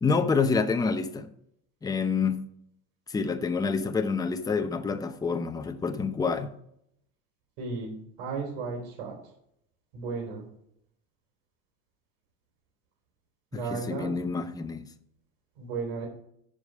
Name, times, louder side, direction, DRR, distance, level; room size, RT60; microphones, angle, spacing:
voice 1, 0.0-1.3 1.8-2.5 3.1-6.5 13.5-14.9, left 5 dB, 10° left, 0.7 m, -27 dB
voice 2, 7.6-9.2 9.9-10.5 13.5-14.2 15.6-16.1, right 4 dB, 85° right, 3.7 m, -34 dB
9.8 x 5.1 x 5.5 m
supercardioid pair, 130°, 31 cm